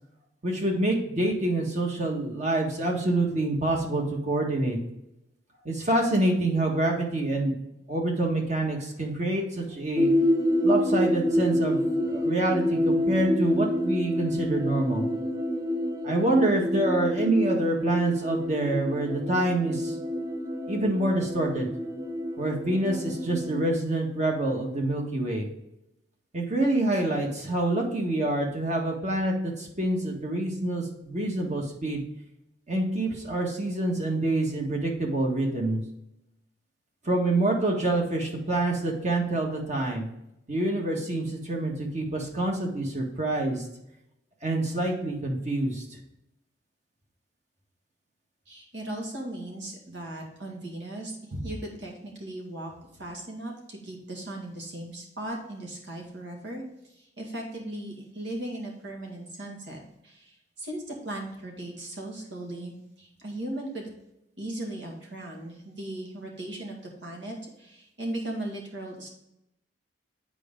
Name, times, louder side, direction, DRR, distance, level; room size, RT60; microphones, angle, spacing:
voice 1, 0.4-4.8 5.6-7.5 7.9-10.1 10.6-15.0 16.0-19.9 20.7-21.7 22.4-25.5 26.3-32.0 32.7-35.8 37.0-40.1 40.5-43.6 44.4-45.8, right 2 dB, 40° right, 0 dB, 1.7 m, -26 dB
sound 1, 10.0-23.7, equal, 20° right, 0.8 m, -28 dB
voice 2, 48.5-52.7 53.0-56.6 57.0-59.8 60.0-63.9 64.4-69.1, right 1 dB, 75° right, -1 dB, 2.1 m, -37 dB
8.2 x 5.0 x 3.7 m, 0.83 s
head